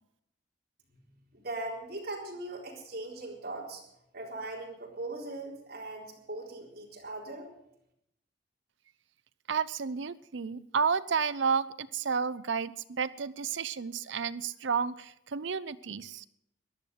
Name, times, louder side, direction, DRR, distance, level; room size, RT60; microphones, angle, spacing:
voice 1, 1.3-3.8 4.1-7.5, right 2 dB, 50° right, -2 dB, 4.2 m, -39 dB
voice 2, 9.5-16.2, right 6 dB, 65° right, 15 dB, 0.6 m, -31 dB
14.5 x 10.5 x 7.8 m, 0.81 s
head